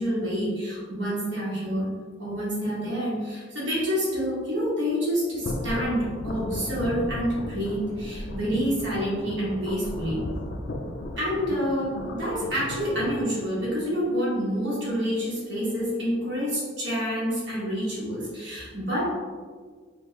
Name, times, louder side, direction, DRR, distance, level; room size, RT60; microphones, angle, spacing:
voice 1, 0.0-1.9 2.2-10.3 11.2-19.1, equal, 75° right, -7 dB, 1.3 m, -28 dB
sound 1, 5.4-13.2, left 1 dB, 65° left, 0.4 m, -35 dB
3.4 x 2.3 x 3.2 m, 1.6 s
head